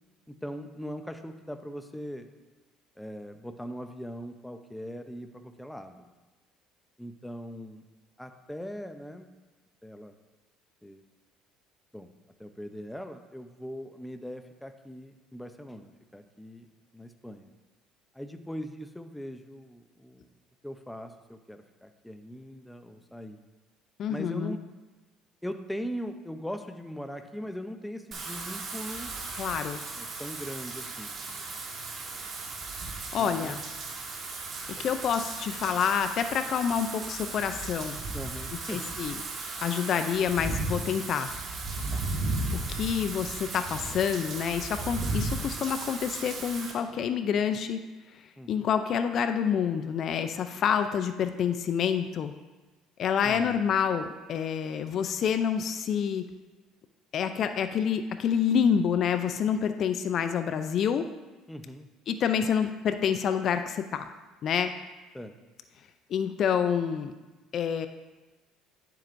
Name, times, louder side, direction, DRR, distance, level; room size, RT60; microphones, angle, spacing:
voice 1, 0.3-2.3 3.0-6.1 7.0-7.8 8.2-9.3 9.8-10.2 10.8-11.0 11.9-12.1 12.4-17.5 18.1-20.3 20.6-23.4 24.1-24.6 25.4-29.1 29.9-31.5 32.1-32.3 33.1-33.6 34.8-35.0 38.1-38.9 41.9-42.0 48.4-48.7 53.2-53.6 61.5-61.9 65.1-65.3, equal, 5° left, 7 dB, 0.6 m, -40 dB
voice 2, 24.0-24.6 29.4-29.8 33.1-33.6 34.7-38.0 38.7-39.2 39.6-41.3 42.5-47.8 48.5-52.3 53.0-56.2 57.1-61.1 62.1-64.0 64.4-64.7 66.1-67.1 67.5-67.9, left 7 dB, 50° left, 9 dB, 0.4 m, -28 dB
Wind / Rain, 28.1-46.7, right 3 dB, 45° right, 1.5 m, -35 dB
10.5 x 7.5 x 2.6 m, 1.2 s
supercardioid pair, 100°, 0 cm